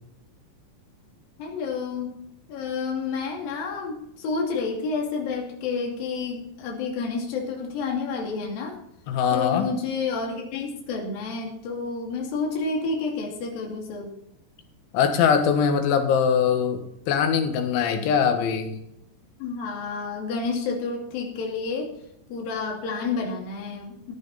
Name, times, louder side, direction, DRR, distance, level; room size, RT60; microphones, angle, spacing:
voice 1, 1.4-2.1 2.5-8.8 9.3-14.1 19.4-21.9 22.3-24.1, left 4 dB, 55° left, 0 dB, 4.0 m, -30 dB
voice 2, 9.1-9.7 14.9-18.8, left 7 dB, 90° left, 6 dB, 3.9 m, -22 dB
14.5 x 10.5 x 4.2 m, 0.77 s
omnidirectional pair, 5.2 m